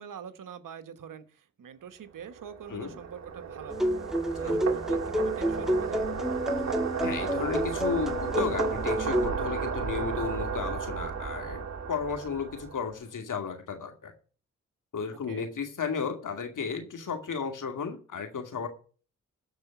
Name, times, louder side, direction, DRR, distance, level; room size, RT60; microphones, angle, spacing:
voice 1, 0.0-3.9 4.3-6.1 15.3-15.5, right 8 dB, 80° right, 10 dB, 1.3 m, -44 dB
sound 1, 2.3-12.9, right 6 dB, 55° right, 2.0 m, -33 dB
voice 2, 2.7-3.0 4.4-4.6 7.0-14.1 14.9-18.7, left 6 dB, 70° left, 6 dB, 2.4 m, -34 dB
sound 2, 3.7-9.3, equal, ahead, 1.7 m, -29 dB
14.0 x 5.0 x 8.1 m, 0.40 s
supercardioid pair, 45°, 32 cm